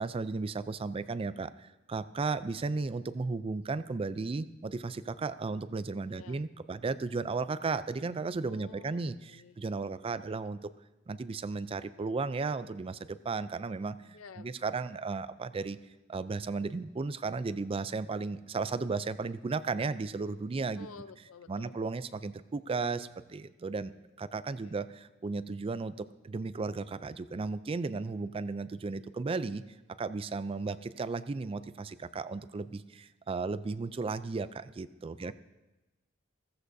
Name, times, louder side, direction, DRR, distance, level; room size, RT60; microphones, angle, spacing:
voice 1, 0.0-10.7 11.1-15.8 16.1-20.9 21.5-29.6 30.0-35.3, right 4 dB, 25° right, 14 dB, 0.3 m, -35 dB
voice 2, 8.4-9.0 9.3-9.6 14.1-14.8 20.8-21.8 24.5-24.8 35.2-35.3, left 5 dB, 90° left, 12 dB, 0.6 m, -51 dB
15.5 x 14.5 x 2.7 m, 1.1 s
head